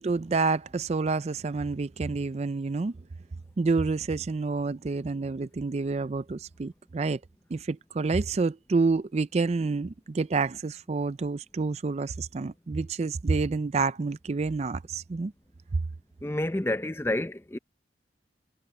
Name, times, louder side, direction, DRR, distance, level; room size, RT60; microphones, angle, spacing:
voice 1, 0.0-3.0 3.6-7.2 7.5-15.3, right 4 dB, 35° right, 0.4 m, -28 dB
voice 2, 16.2-17.6, left 1 dB, 15° left, 0.6 m, -29 dB
head